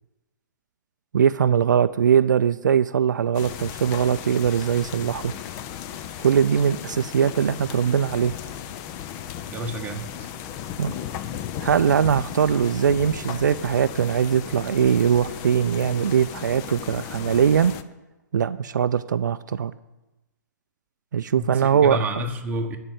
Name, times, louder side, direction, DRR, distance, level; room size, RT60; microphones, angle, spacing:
voice 1, 1.1-5.3 6.2-8.4 10.8-11.0 11.6-17.7 18.3-19.7 21.1-22.0, right 8 dB, 70° right, 12 dB, 0.4 m, -21 dB
sound 1, 3.3-17.8, left 10 dB, 30° left, 0.5 m, -36 dB
voice 2, 9.5-10.3 21.3-22.8, right 1 dB, 15° right, 3 dB, 1.0 m, -30 dB
12.5 x 4.5 x 8.4 m, 1.0 s
hypercardioid pair, 135°, 10 cm